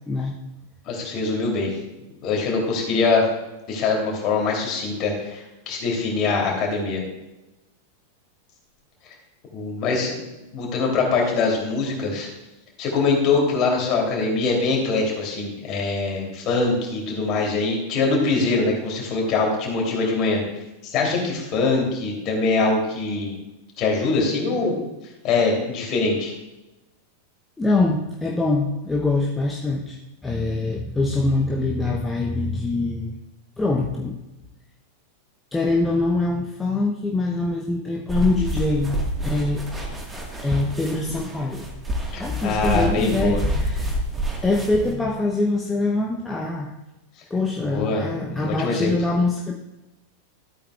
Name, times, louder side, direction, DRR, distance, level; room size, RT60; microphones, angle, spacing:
voice 1, 0.1-0.4 27.6-30.0 30.2-33.1 33.6-34.2 35.5-38.9 39.2-39.7 40.4-41.7 42.2-44.0 44.4-46.7 47.3-49.5, left 2 dB, 10° left, -1 dB, 0.8 m, -24 dB
voice 2, 0.8-1.7 2.2-3.2 3.7-7.0 9.5-12.3 12.8-20.4 20.8-23.3 23.8-24.8 25.2-26.3 42.1-43.4 47.7-48.1 48.3-48.9, left 3 dB, 35° left, -1 dB, 2.9 m, -23 dB
sound 1, 38.1-44.9, right 1 dB, 10° right, 1.5 m, -28 dB
13.5 x 8.6 x 2.4 m, 1.0 s
figure-of-eight pair, 90°, 0 cm